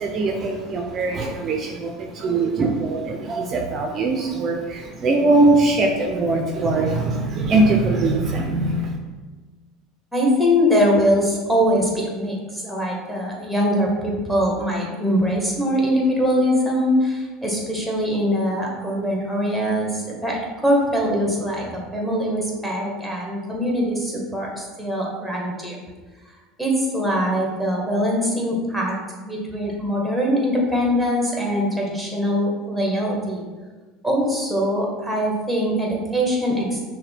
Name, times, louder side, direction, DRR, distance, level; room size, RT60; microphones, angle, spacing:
voice 1, 0.0-9.0, right 2 dB, 40° right, 2 dB, 0.5 m, -21 dB
voice 2, 10.1-25.8 26.6-28.9 29.2-33.4 34.0-36.8, equal, ahead, -2 dB, 1.2 m, -22 dB
5.6 x 2.1 x 3.3 m, 1.3 s
hypercardioid pair, 90°, 0 cm